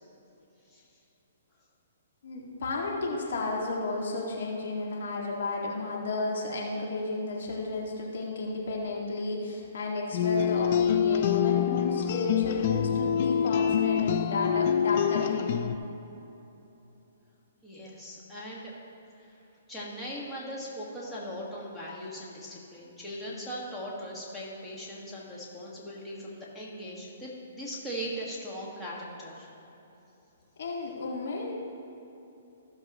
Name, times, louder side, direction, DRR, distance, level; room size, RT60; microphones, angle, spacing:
voice 1, 2.2-15.7 30.6-31.5, left 2 dB, 70° left, -2 dB, 1.9 m, -33 dB
sound 1, 10.1-15.8, left 9 dB, 50° left, 0.4 m, -26 dB
voice 2, 17.6-18.7 19.2-19.3 19.7-29.5, equal, 10° left, -6 dB, 1.7 m, -39 dB
15.5 x 6.8 x 3.0 m, 3.0 s
hypercardioid pair, 145°, 0 cm